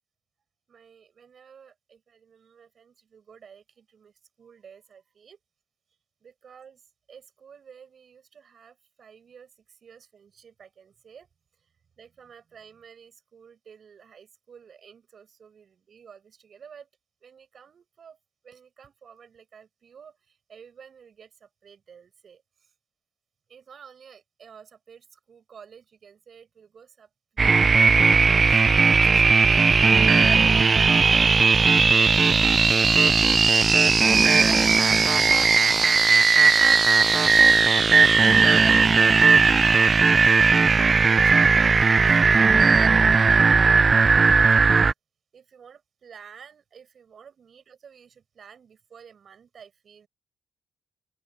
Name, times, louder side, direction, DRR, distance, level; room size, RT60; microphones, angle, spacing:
voice 1, 0.7-5.4 6.2-11.3 11.6-11.7 12.0-16.9 17.2-18.2 18.4-22.7 23.5-30.2 30.5-33.4 35.9-36.0 36.3-40.2 40.9-44.9 45.3-50.1, right 7 dB, 55° right, 8.0 m, -51 dB
sound 1, 27.4-44.9, right 4 dB, 40° right, 0.4 m, -17 dB
open air
supercardioid pair, 55°, 0 cm